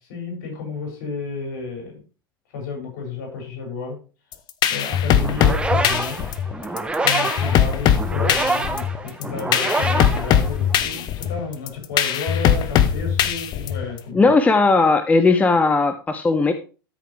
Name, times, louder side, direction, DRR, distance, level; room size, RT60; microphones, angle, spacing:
voice 1, 0.1-2.0 2.5-4.0 4.7-6.2 7.0-14.3, left 4 dB, 55° left, 1 dB, 6.6 m, -32 dB
sound 1, 4.3-14.0, left 9 dB, 35° left, 0.9 m, -20 dB
sound 2, 5.2-11.0, right 2 dB, 10° right, 1.2 m, -26 dB
voice 2, 14.1-16.5, left 3 dB, 10° left, 9 dB, 0.7 m, -17 dB
13.5 x 6.7 x 3.4 m, 0.34 s
figure-of-eight pair, 85°, 12 cm